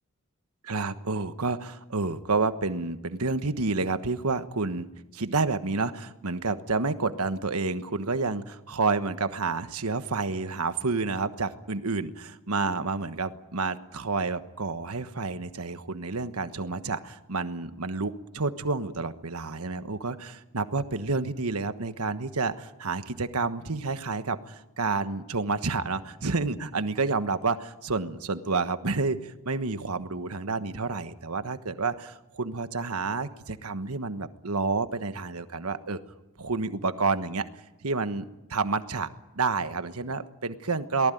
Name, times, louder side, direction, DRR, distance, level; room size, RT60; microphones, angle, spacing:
voice 1, 0.7-36.0 36.4-37.5 37.8-39.1 39.3-41.1, right 3 dB, 85° right, 10 dB, 1.3 m, -29 dB
23.5 x 19.0 x 9.3 m, 1.0 s
head